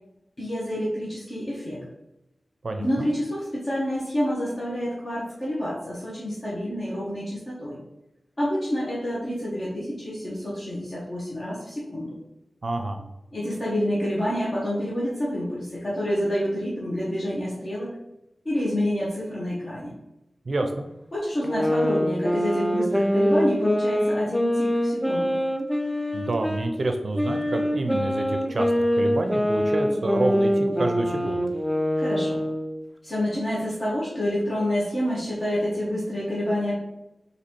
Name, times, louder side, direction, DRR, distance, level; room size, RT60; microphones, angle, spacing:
voice 1, 0.4-1.8 2.8-7.8 8.4-12.2 13.3-17.9 18.4-19.9 21.1-25.4 32.0-32.4 33.0-36.8, equal, 35° left, -7 dB, 1.2 m, -28 dB
voice 2, 2.6-3.1 12.6-13.0 20.5-20.9 26.1-31.5, right 2 dB, 55° right, 5 dB, 0.5 m, -28 dB
sound 1, 21.4-26.7 27.1-32.8, equal, 5° left, 0.5 m, -24 dB
4.0 x 2.8 x 4.5 m, 0.93 s
wide cardioid pair, 105°, 0 cm